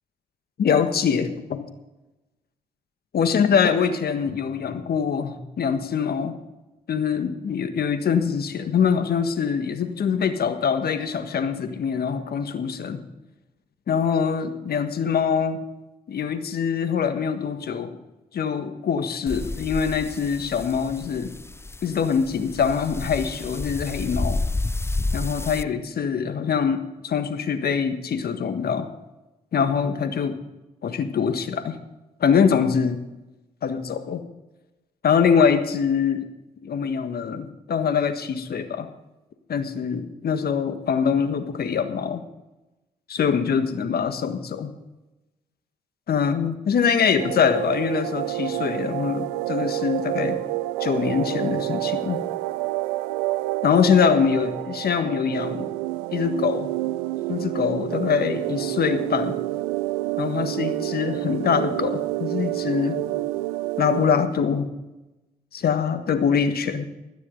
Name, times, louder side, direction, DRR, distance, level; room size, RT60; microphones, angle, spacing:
voice 1, 0.6-1.7 3.1-6.4 6.9-13.0 13.9-15.6 16.1-18.0 18.3-21.3 21.8-24.4 25.1-28.9 29.5-30.4 30.8-31.8 32.2-33.0 33.6-34.2 35.0-36.3 36.6-38.9 39.5-42.2 43.1-44.7 46.1-50.4 50.8-52.2 53.6-55.7 56.1-56.7 57.3-59.4 60.2-63.1 63.8-64.7 65.5-66.9, left 6 dB, 55° left, 9 dB, 1.6 m, -23 dB
sound 1, 19.3-25.6, left 2 dB, 15° left, 0.6 m, -30 dB
sound 2, 47.2-64.3, right 18 dB, 85° right, 0.4 m, -28 dB
16.5 x 13.0 x 3.9 m, 1.0 s
hypercardioid pair, 45°, 19 cm